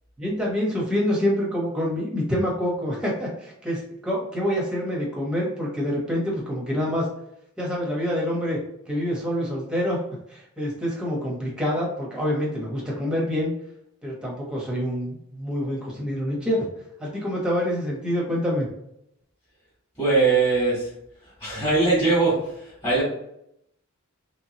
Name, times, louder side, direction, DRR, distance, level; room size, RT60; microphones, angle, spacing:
voice 1, 0.2-7.1 7.6-8.6 8.9-10.0 10.3-13.5 14.0-16.6 17.0-18.7, equal, 5° right, -4 dB, 0.9 m, -26 dB
voice 2, 20.0-20.9 21.2-23.0, right 3 dB, 10° left, -9 dB, 1.3 m, -21 dB
3.3 x 3.0 x 2.8 m, 0.77 s
head